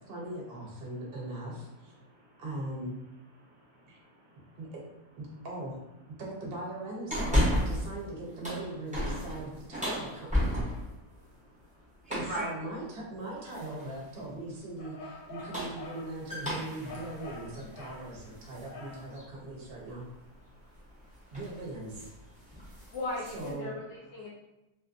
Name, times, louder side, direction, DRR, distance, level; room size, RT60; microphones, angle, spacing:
voice 1, 0.0-1.9 2.4-3.0 3.9-4.0 4.6-4.8 5.2-5.8 6.2-10.6 12.1-20.1 21.3-22.1 23.3-23.7, right 2 dB, 50° right, -3 dB, 0.8 m, -40 dB
voice 2, 2.1-2.4 3.4-4.6 11.0-11.8 12.3-12.5 20.5-21.4 22.4-22.9, right 1 dB, 30° right, -9 dB, 1.1 m, -45 dB
sound 1, 7.1-7.9 8.3-11.0 12.0-12.5 13.5-13.9 15.2-18.7 19.1-19.2 20.8-21.0 21.3-21.6 21.9-22.1 22.5-23.5, left 1 dB, 10° right, 0.4 m, -33 dB
sound 2, 14.8-16.1 16.9-18.1 18.7-19.1, left 3 dB, 85° left, 1.1 m, -46 dB
voice 3, 22.9-24.3, left 2 dB, 65° left, -5 dB, 0.7 m, -37 dB
2.5 x 2.4 x 2.4 m, 0.94 s
omnidirectional pair, 1.6 m